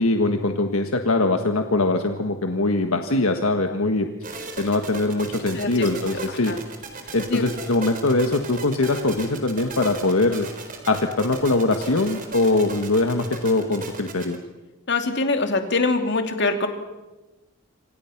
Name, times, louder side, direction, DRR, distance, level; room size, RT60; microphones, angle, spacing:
voice 1, 0.0-4.1 4.6-6.5 7.1-10.5 10.9-14.4, left 2 dB, 75° left, 5 dB, 1.5 m, -22 dB
sound 1, 4.2-14.4, right 3 dB, 40° right, 4.1 m, -36 dB
voice 2, 5.5-6.2 6.5-6.6 7.3-7.5 14.9-16.7, left 3 dB, 55° left, 5 dB, 2.9 m, -24 dB
27.0 x 26.5 x 6.0 m, 1.1 s
head